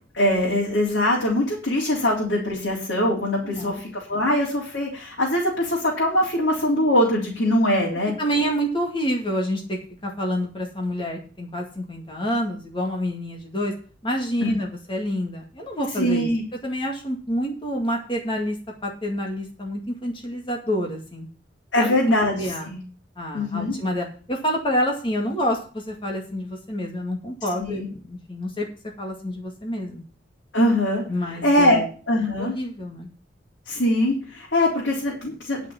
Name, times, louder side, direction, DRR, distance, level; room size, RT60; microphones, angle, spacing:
voice 1, 0.1-8.1 14.4-14.6 16.0-16.4 21.7-22.8 23.3-23.7 27.6-27.9 30.5-31.0 31.4-32.5 33.7-35.7, left 1 dB, 80° left, -4 dB, 3.8 m, -22 dB
voice 2, 3.4-3.8 4.1-4.2 8.2-13.7 14.0-16.3 16.6-18.6 18.8-21.3 21.8-21.9 22.4-22.7 23.2-28.7 29.0-30.0 31.1-31.9 32.4-33.1, equal, 25° left, 0 dB, 2.1 m, -28 dB
11.0 x 6.1 x 7.2 m, 0.38 s
head